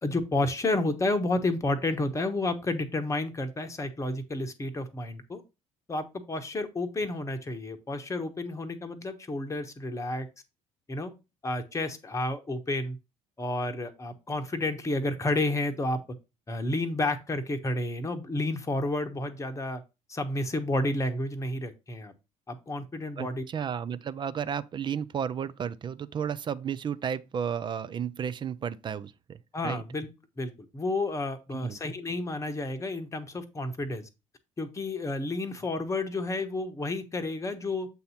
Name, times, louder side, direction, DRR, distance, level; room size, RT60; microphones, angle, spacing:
voice 1, 0.0-5.4 5.9-10.3 10.9-11.1 11.4-13.0 13.4-16.0 16.5-19.8 20.1-22.1 22.5-23.4 29.5-30.1 30.4-34.1 34.6-37.9, left 2 dB, 20° left, 0.9 m, -31 dB
voice 2, 23.2-29.4 29.6-29.8 31.5-31.8, right 8 dB, 30° right, 0.4 m, -33 dB
7.6 x 2.7 x 5.5 m
figure-of-eight pair, 55°, 17 cm